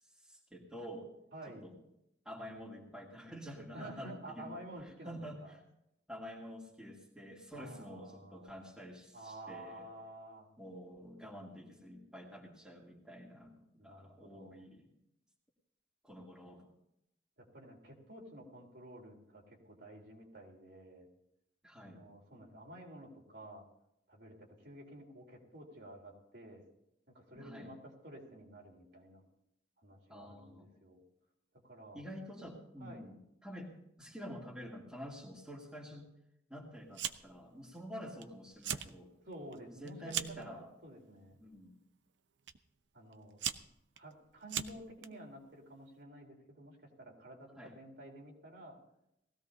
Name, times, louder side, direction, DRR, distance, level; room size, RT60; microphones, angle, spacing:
voice 1, 0.1-1.1 1.5-1.7 2.2-5.6 6.1-9.9 10.6-14.9 16.0-16.7 21.6-22.0 27.3-27.7 30.1-30.7 31.9-36.1 36.5-39.1 39.7-40.7 41.4-41.8 47.6-47.7, equal, 5° right, -3 dB, 2.3 m, -48 dB
voice 2, 1.3-1.7 3.7-5.6 7.5-8.7 9.1-10.5 13.8-14.6 17.4-21.1 21.8-23.6 24.1-26.6 27.1-29.2 29.8-31.0 31.6-32.0 32.8-33.1 39.2-41.4 42.9-43.4 44.0-48.8, right 1 dB, 65° right, -1 dB, 3.7 m, -51 dB
Fire, 36.9-37.4 37.7-38.2 38.5-38.9 39.3-40.5 41.3-41.6 42.5-42.6 43.1-45.1, right 9 dB, 80° right, 0.7 m, -39 dB
19.5 x 16.0 x 2.8 m, 0.81 s
head